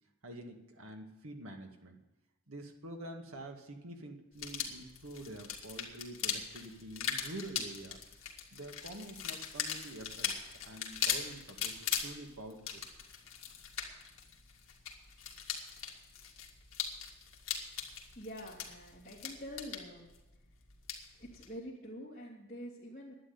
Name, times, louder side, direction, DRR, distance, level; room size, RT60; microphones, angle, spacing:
voice 1, 0.2-2.0 2.5-8.0 8.5-12.8, right 1 dB, 75° right, 3 dB, 2.0 m, -47 dB
sound 1, 4.4-21.6, left 8 dB, 70° left, 2.1 m, -40 dB
voice 2, 18.1-20.1 21.2-23.1, equal, 30° left, -9 dB, 2.9 m, -46 dB
11.0 x 8.9 x 9.5 m, 1.0 s
head